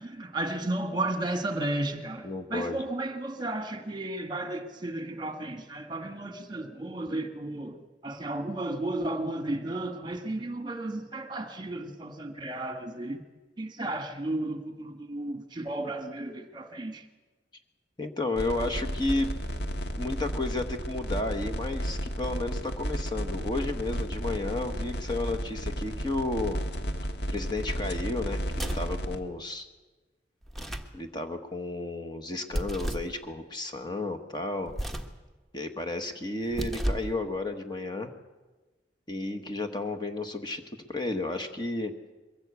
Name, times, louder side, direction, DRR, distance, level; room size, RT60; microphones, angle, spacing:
voice 1, 0.0-13.2 13.6-17.1, right 2 dB, 25° right, 1.6 m, -33 dB
voice 2, 2.2-2.8 18.0-19.3 20.0-26.6 27.3-29.7 30.9-34.7 35.5-38.1 39.1-40.6 40.9-41.9, left 2 dB, 25° left, 1.2 m, -32 dB
sound 1, 18.4-29.2, equal, 65° left, 1.5 m, -33 dB
sound 2, 28.5-29.0 30.4-31.0 32.5-33.1 34.7-35.2 36.4-37.2, equal, ahead, 1.2 m, -33 dB
22.5 x 16.0 x 8.2 m
head